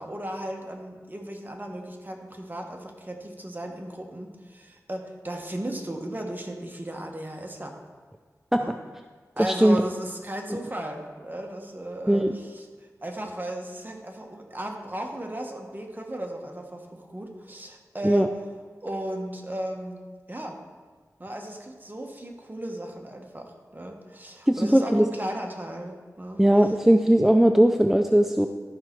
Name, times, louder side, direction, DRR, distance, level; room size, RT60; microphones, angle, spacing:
voice 1, 0.0-7.8 8.6-8.7 9.4-18.3 18.8-20.0 20.3-20.6 21.2-26.7, right 1 dB, 30° right, 2 dB, 1.4 m, -36 dB
voice 2, 9.4-9.8 10.5-10.6 12.1-12.4 18.0-18.3 24.5-25.1 26.4-28.5, right 1 dB, 5° right, 6 dB, 0.4 m, -19 dB
13.0 x 5.6 x 4.6 m, 1.5 s
wide cardioid pair, 45°, 6 cm